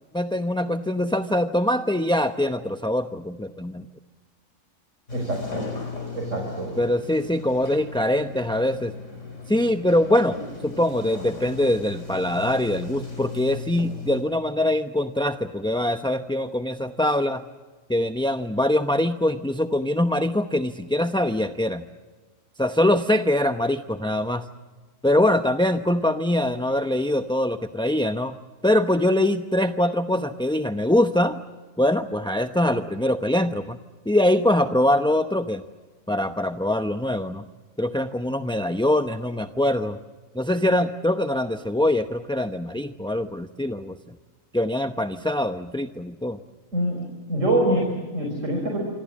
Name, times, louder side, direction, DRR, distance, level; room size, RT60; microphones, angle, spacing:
voice 1, 0.1-3.8 6.8-8.9 9.5-10.4 10.6-17.4 17.9-21.8 22.6-24.4 25.0-28.3 28.6-31.4 31.8-33.8 34.1-35.6 36.1-37.4 37.8-40.0 40.3-44.0 44.5-46.4, left 1 dB, 5° left, 8 dB, 0.5 m, -23 dB
Sliding door, 5.1-14.2, left 3 dB, 65° left, 5.1 m, -37 dB
voice 2, 5.1-5.7 6.1-6.8 46.7-48.8, right 1 dB, 65° right, 1 dB, 5.5 m, -25 dB
27.0 x 26.0 x 7.5 m, 1.4 s
omnidirectional pair, 1.4 m